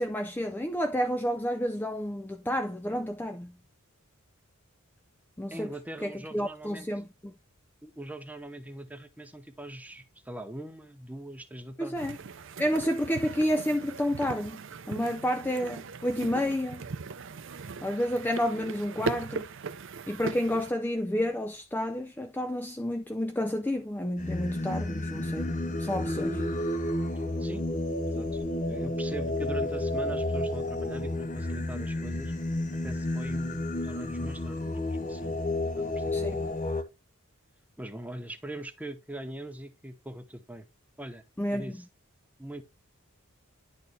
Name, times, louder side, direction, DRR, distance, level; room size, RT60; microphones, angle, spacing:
voice 1, 0.0-3.5 5.4-5.7 6.0-7.3 11.8-12.2 12.6-14.6 14.9-16.9 17.8-19.5 20.1-25.5 25.8-26.4 36.1-36.4 41.4-41.7, equal, 10° left, 0.4 m, -30 dB
voice 2, 5.5-6.9 7.8-12.0 27.4-27.7 28.1-32.3 32.8-35.4 35.8-36.5 37.8-40.7 41.0-41.2 41.5-41.9 42.4-42.6, right 1 dB, 5° right, 0.8 m, -42 dB
sound 1, 12.0-20.7, right 4 dB, 60° right, 0.6 m, -39 dB
Singing, 24.2-36.8, left 1 dB, 35° left, 0.8 m, -31 dB
10.5 x 4.3 x 3.3 m
head